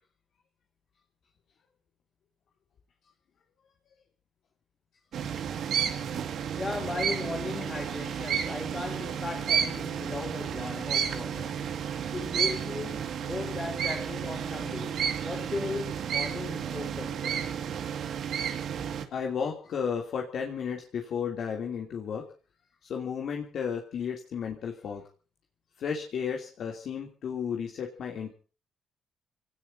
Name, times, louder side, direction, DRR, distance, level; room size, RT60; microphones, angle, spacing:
sound 1, 5.1-19.1, right 8 dB, 70° right, 2.1 m, -32 dB
voice 1, 6.6-11.9 12.1-17.5, left 3 dB, 30° left, 4.6 m, -37 dB
voice 2, 19.1-22.3 22.8-25.0 25.8-28.3, left 7 dB, 65° left, 2.9 m, -33 dB
27.5 x 18.5 x 2.8 m
cardioid pair, 90°, 0 cm